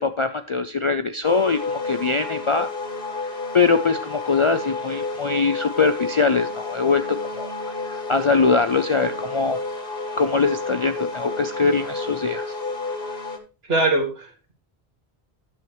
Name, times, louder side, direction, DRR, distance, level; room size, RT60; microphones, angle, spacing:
voice 1, 0.0-2.7 3.5-7.5 7.8-9.6 10.2-12.5, left 4 dB, 50° left, 9 dB, 0.3 m, -22 dB
sound 1, 1.2-13.4, left 3 dB, 65° left, 1.5 m, -31 dB
voice 2, 13.7-14.5, right 2 dB, 75° right, 3 dB, 2.1 m, -22 dB
11.0 x 7.0 x 3.0 m, 0.31 s
omnidirectional pair, 1.0 m